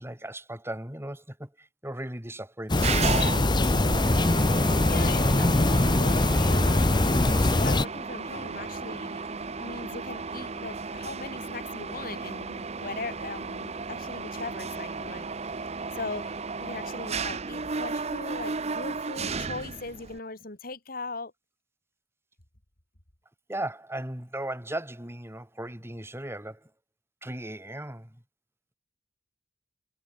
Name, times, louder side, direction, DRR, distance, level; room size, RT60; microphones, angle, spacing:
voice 1, 0.0-3.0 23.5-26.7 27.2-28.2, right 1 dB, 15° right, 5.4 m, -37 dB
Calm garden ambience, 2.7-7.9, left 2 dB, 25° left, 0.8 m, -22 dB
Mechanisms, 2.8-20.2, right 4 dB, 40° right, 0.9 m, -34 dB
voice 2, 4.9-6.9 7.6-15.3 15.9-21.3, left 3 dB, 55° left, 3.2 m, -39 dB
head